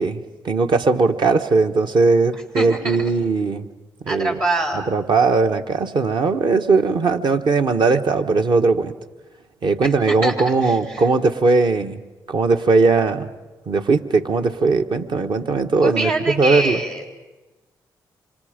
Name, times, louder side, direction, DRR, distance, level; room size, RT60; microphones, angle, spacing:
voice 1, 0.0-3.7 4.1-4.4 4.9-8.9 9.6-12.0 12.3-13.3 13.7-16.8, right 4 dB, 60° right, 6 dB, 1.3 m, -19 dB
voice 2, 2.3-3.0 4.1-4.9 9.8-11.0 15.8-17.0, right 2 dB, 85° right, -2 dB, 3.9 m, -25 dB
28.0 x 26.0 x 5.2 m, 1.1 s
supercardioid pair, 45°, 9 cm